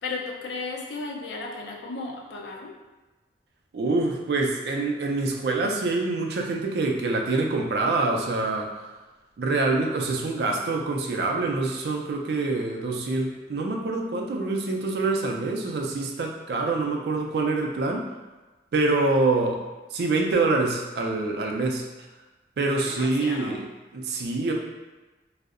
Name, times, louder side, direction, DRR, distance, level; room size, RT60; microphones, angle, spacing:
voice 1, 0.0-2.7 22.7-23.6, left 3 dB, 80° left, -1 dB, 0.4 m, -35 dB
voice 2, 3.7-8.7 9.4-18.1 18.7-19.6 19.9-21.8 22.6-23.7 23.9-24.5, right 3 dB, 65° right, 1 dB, 0.3 m, -25 dB
2.6 x 2.0 x 2.4 m, 1.2 s
head